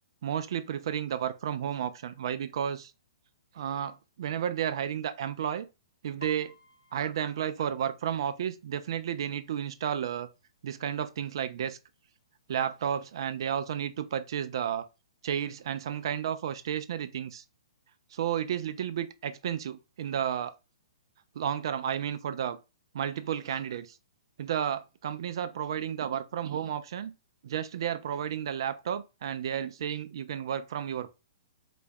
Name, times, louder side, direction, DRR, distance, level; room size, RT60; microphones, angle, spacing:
voice 1, 0.2-2.9 3.5-5.7 6.0-6.5 6.9-10.3 10.6-11.8 12.5-14.9 15.2-17.4 18.1-20.5 21.4-22.6 22.9-24.0 24.4-27.1 27.4-31.1, right 9 dB, 60° right, 0.4 m, -32 dB
Piano, 6.2-9.9 10.2-10.6 11.0-11.6 12.2-12.3 12.5-13.5 13.9-14.0, left 2 dB, 90° left, 0.9 m, -56 dB
4.1 x 2.3 x 3.4 m
hypercardioid pair, 125°, 3 cm